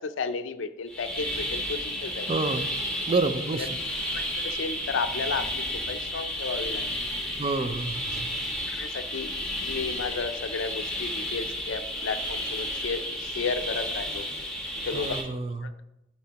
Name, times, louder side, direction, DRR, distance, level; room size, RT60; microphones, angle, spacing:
voice 1, 0.0-2.3 4.1-7.0 7.6-7.7 8.7-9.3 9.6-14.3 14.9-15.2 15.6-15.8, left 4 dB, 90° left, 10 dB, 0.5 m, -33 dB
sound 1, 0.9-15.2, equal, 5° left, 1.3 m, -32 dB
voice 2, 2.3-2.7 3.1-3.7 7.4-8.3 14.9-15.7, right 3 dB, 30° right, 10 dB, 0.4 m, -28 dB
10.5 x 4.2 x 2.9 m, 0.91 s
head